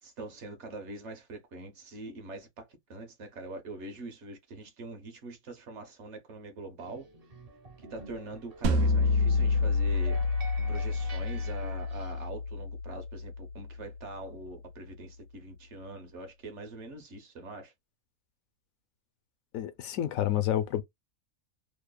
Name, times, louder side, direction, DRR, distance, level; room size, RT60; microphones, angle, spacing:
voice 1, 0.0-7.1 7.8-10.2 10.7-17.7, right 2 dB, 60° right, 1.0 m, -43 dB
sound 1, 6.8-12.3, right 3 dB, 40° right, 0.6 m, -49 dB
sound 2, 8.6-13.7, left 3 dB, 80° right, 1.1 m, -28 dB
voice 2, 19.5-20.8, left 11 dB, 75° left, 1.0 m, -29 dB
3.0 x 2.0 x 2.2 m
omnidirectional pair, 1.5 m